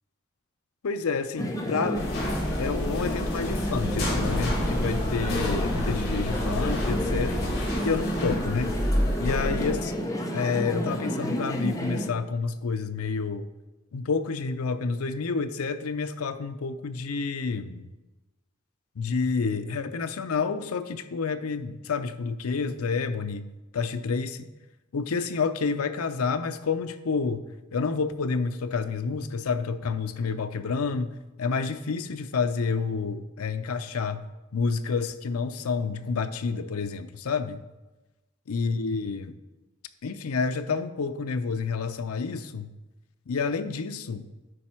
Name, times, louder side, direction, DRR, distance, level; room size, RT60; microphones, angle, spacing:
voice 1, 0.8-2.1 2.6-7.5 7.8-8.7 9.2-9.9 10.3-13.5 13.9-17.9 19.0-23.4 23.7-24.5 24.9-27.4 27.7-31.1 31.4-34.2 34.5-37.6 38.5-39.3 40.0-42.7 43.3-44.3, left 4 dB, 85° left, 9 dB, 0.5 m, -29 dB
sound 1, 1.4-12.1, equal, 15° left, 0.7 m, -31 dB
sound 2, 1.9-9.8, left 1 dB, 50° left, 2.4 m, -29 dB
10.0 x 4.2 x 4.4 m, 1.1 s
head